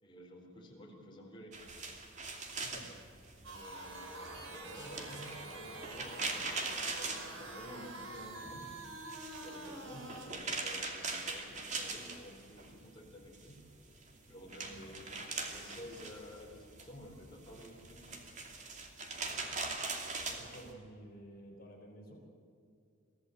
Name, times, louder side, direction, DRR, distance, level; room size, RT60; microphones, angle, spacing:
voice 1, 0.0-1.6 3.4-6.4 6.9-8.7 9.4-13.6 14.3-18.2, equal, 25° left, -1 dB, 4.1 m, -52 dB
sound 1, 1.5-8.0 8.3-12.7 13.0-20.7, right 3 dB, 35° right, 2.5 m, -42 dB
voice 2, 2.5-2.9 14.8-14.9 20.2-22.3, right 1 dB, 45° left, 1 dB, 3.7 m, -52 dB
sound 2, 3.4-10.3, right 2 dB, 70° right, 4.0 m, -46 dB
23.5 x 15.5 x 8.1 m, 2.5 s
head